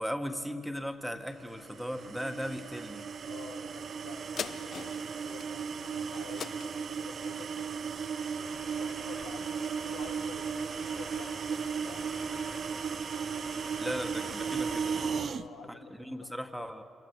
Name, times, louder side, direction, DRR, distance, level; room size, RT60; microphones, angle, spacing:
voice 1, 0.0-3.1 13.8-15.0 15.7-16.8, equal, ahead, 7 dB, 1.7 m, -37 dB
sound 1, 1.5-15.4, right 6 dB, 50° right, 0.6 m, -36 dB
voice 2, 3.2-7.7 8.4-12.2 15.3-16.7, left 5 dB, 75° left, 4 dB, 1.6 m, -50 dB
sound 2, 4.4-9.1 9.6-9.7, left 7 dB, 55° left, 0.4 m, -44 dB
sound 3, 8.4-15.1, left 3 dB, 35° left, 3.8 m, -50 dB
27.5 x 16.0 x 6.1 m, 2.5 s
hypercardioid pair, 40°, 0 cm